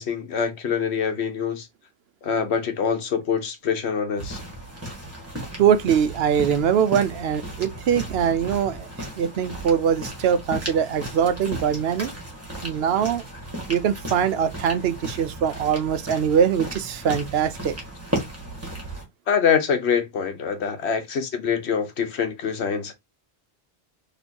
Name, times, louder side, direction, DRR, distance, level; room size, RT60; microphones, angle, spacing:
voice 1, 0.0-1.7 2.2-4.4 19.3-22.9, left 6 dB, 80° left, 1.2 m, -25 dB
sound 1, 4.2-19.0, right 1 dB, 15° right, 1.7 m, -35 dB
voice 2, 5.6-8.9 9.1-12.1 12.6-13.2 13.7-17.7, right 8 dB, 75° right, 0.8 m, -22 dB
4.3 x 3.0 x 2.8 m
omnidirectional pair, 1.1 m